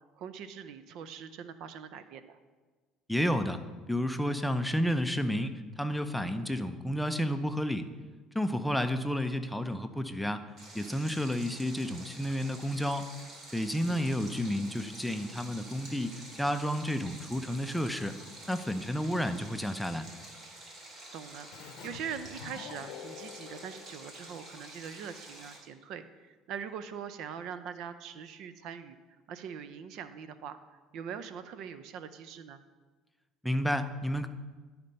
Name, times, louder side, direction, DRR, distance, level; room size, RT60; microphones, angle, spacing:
voice 1, 0.2-2.4 13.9-14.2 21.1-29.0 29.3-30.6 30.9-32.6, right 7 dB, 65° right, 11 dB, 0.5 m, -42 dB
voice 2, 3.1-3.6 3.9-7.9 8.3-10.5 10.7-13.1 13.5-18.2 18.5-20.1 33.4-34.3, equal, ahead, 8 dB, 0.5 m, -31 dB
Stream, 10.6-25.6, right 1 dB, 45° right, 2.7 m, -49 dB
Keyboard (musical), 21.5-24.9, left 9 dB, 70° left, 0.6 m, -48 dB
12.0 x 4.3 x 5.3 m, 1.4 s
supercardioid pair, 105°, 0 cm